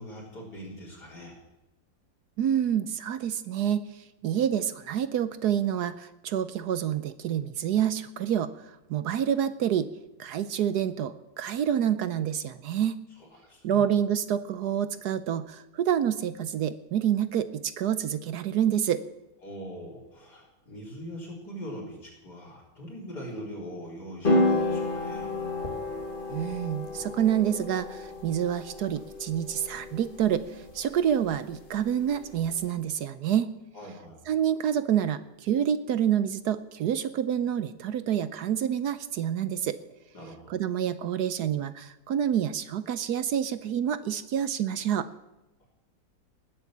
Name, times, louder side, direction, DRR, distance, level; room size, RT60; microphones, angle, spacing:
voice 1, 0.0-1.4 13.2-13.8 19.4-25.3 33.7-34.2 40.1-40.5 45.6-45.7, equal, 60° left, -3 dB, 4.4 m, -42 dB
voice 2, 2.4-3.8 4.2-9.9 10.2-13.0 13.6-19.0 26.3-33.5 34.3-39.8 40.5-45.1, right 9 dB, 65° right, 13 dB, 1.1 m, -28 dB
sound 1, 24.2-32.7, left 2 dB, 30° left, 2.2 m, -31 dB
19.0 x 8.0 x 7.4 m, 0.94 s
omnidirectional pair, 2.0 m